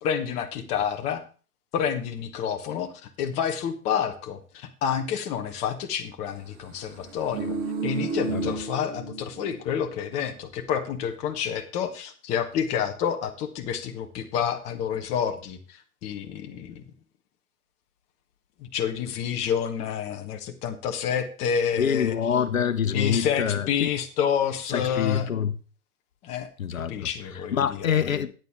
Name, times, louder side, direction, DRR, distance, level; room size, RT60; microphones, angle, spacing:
voice 1, 0.0-1.2 1.7-7.6 7.8-16.8 18.6-22.2 22.9-25.3 26.2-26.5 26.9-28.0, left 8 dB, 15° left, 0.8 m, -29 dB
sound 1, 7.0-9.6 9.9-10.1, right 3 dB, 25° right, 1.8 m, -31 dB
voice 2, 21.8-23.9 24.7-25.5 26.6-26.9 27.5-28.3, left 8 dB, 65° left, 0.9 m, -25 dB
13.5 x 9.0 x 3.5 m
figure-of-eight pair, 120°, 44 cm